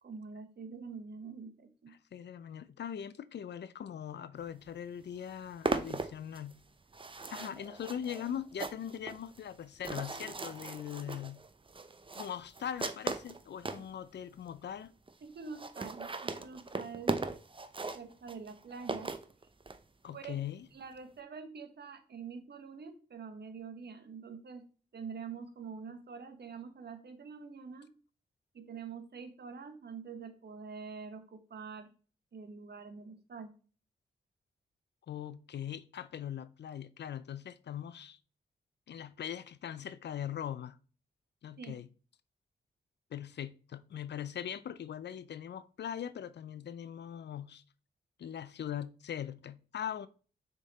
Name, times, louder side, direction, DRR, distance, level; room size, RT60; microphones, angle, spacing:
voice 1, 0.0-1.9 13.8-13.9 15.2-17.2 17.9-19.1 20.1-20.4 20.7-24.6 24.9-27.9 28.5-31.9 32.3-33.5 41.6-41.8, right 5 dB, 60° right, 1.1 m, -46 dB
voice 2, 1.9-6.6 7.3-11.4 12.1-14.9 20.0-20.7 35.1-38.2 38.9-40.8 41.4-41.9 43.1-47.6 48.2-50.1, left 9 dB, 65° left, 0.5 m, -41 dB
sound 1, 4.7-4.8 5.0-13.9 14.5-14.6 14.8-14.9 15.1-15.2 15.4-19.8, right 3 dB, 30° right, 0.7 m, -38 dB
6.3 x 3.8 x 4.1 m
cardioid pair, 55°, 19 cm